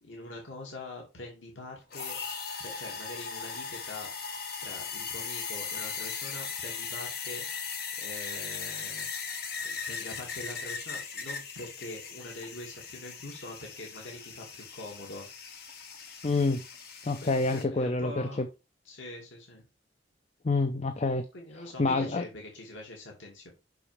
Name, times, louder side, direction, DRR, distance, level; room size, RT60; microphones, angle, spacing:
voice 1, 0.0-2.2 2.6-4.1 4.6-7.4 8.0-9.1 9.6-15.3 17.2-18.4 18.8-19.6 21.3-23.5, left 2 dB, 85° left, 2.3 m, -44 dB
sound 1, 1.9-17.6, left 5 dB, 55° left, 1.6 m, -38 dB
voice 2, 16.2-16.6 17.0-18.5 20.4-21.3 21.8-22.2, left 3 dB, 35° left, 0.6 m, -27 dB
7.0 x 6.2 x 3.4 m
head